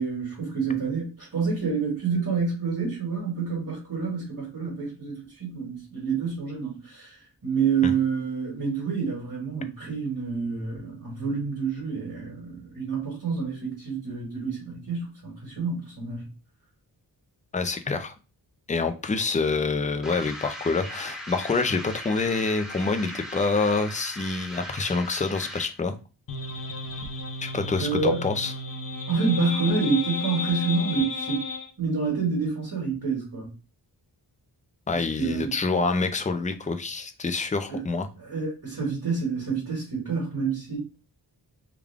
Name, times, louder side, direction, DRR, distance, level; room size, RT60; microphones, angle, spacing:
voice 1, 0.0-16.3 27.8-28.2 29.1-31.4 31.8-33.5 34.9-35.5 37.7-37.8 38.2-40.8, right 5 dB, 50° right, -3 dB, 1.9 m, -28 dB
voice 2, 17.5-18.1 18.7-25.9 27.4-28.5 34.9-38.1, left 4 dB, 20° left, 8 dB, 0.4 m, -26 dB
sound 1, 20.0-25.8, equal, ahead, 1.0 m, -38 dB
sound 2, 26.3-31.7, left 3 dB, 45° left, 0.8 m, -33 dB
3.6 x 2.2 x 3.5 m, 0.32 s
wide cardioid pair, 70°, 44 cm